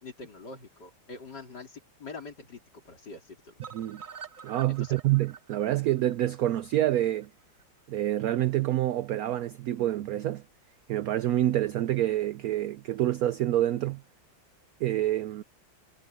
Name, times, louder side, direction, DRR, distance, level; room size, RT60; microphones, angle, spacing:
voice 1, 0.0-3.5 4.7-5.0, left 3 dB, 60° left, 4.6 m, -44 dB
sound 1, 3.6-7.6 8.0-8.1 8.4-8.5 8.7-8.8, right 6 dB, 35° right, 0.8 m, -48 dB
voice 2, 4.4-7.3 7.9-10.4 10.9-14.0 14.8-15.4, right 13 dB, 75° right, 0.8 m, -27 dB
omnidirectional pair, 2.0 m